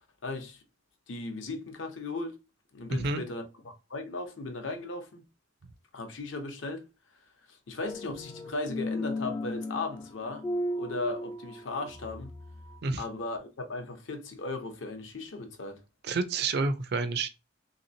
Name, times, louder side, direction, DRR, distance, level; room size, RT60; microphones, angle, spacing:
voice 1, 0.2-0.6 1.1-2.4 2.7-5.2 5.9-6.9 7.5-10.5 10.8-12.3 13.0-15.8, left 2 dB, 75° left, 0.7 m, -37 dB
voice 2, 2.9-3.2 12.8-13.0 16.0-17.3, right 3 dB, 60° right, 0.4 m, -29 dB
sound 1, 7.8-12.8, left 1 dB, 20° left, 0.3 m, -36 dB
3.1 x 2.8 x 2.7 m
head